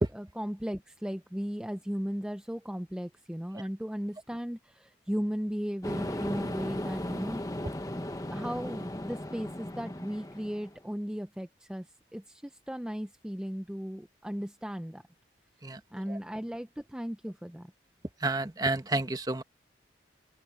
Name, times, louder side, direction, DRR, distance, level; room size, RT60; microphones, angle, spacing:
voice 1, 0.1-7.4 8.3-15.0 15.9-17.7, equal, 5° right, 0.5 m, -36 dB
sound 1, 5.8-10.8, left 1 dB, 20° left, 1.0 m, -36 dB
voice 2, 18.2-19.4, right 2 dB, 20° right, 1.0 m, -29 dB
open air
head